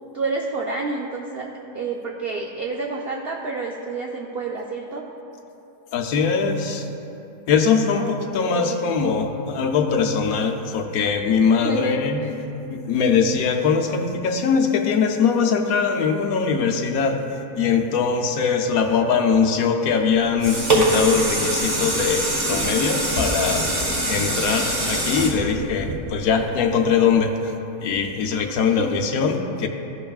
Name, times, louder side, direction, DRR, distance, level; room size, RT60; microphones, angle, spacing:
voice 1, 0.1-1.5 1.7-5.0 8.0-9.1 11.5-12.3 28.7-29.1, right 4 dB, 70° right, 0 dB, 0.5 m, -29 dB
voice 2, 5.9-6.9 7.5-12.3 12.7-17.2 17.6-23.7 24.1-27.5 27.8-29.7, left 6 dB, 70° left, 4 dB, 1.1 m, -21 dB
sound 1, 20.1-26.4 26.9-27.0, right 1 dB, 30° right, 1.2 m, -23 dB
15.5 x 5.6 x 2.3 m, 2.9 s
omnidirectional pair, 1.6 m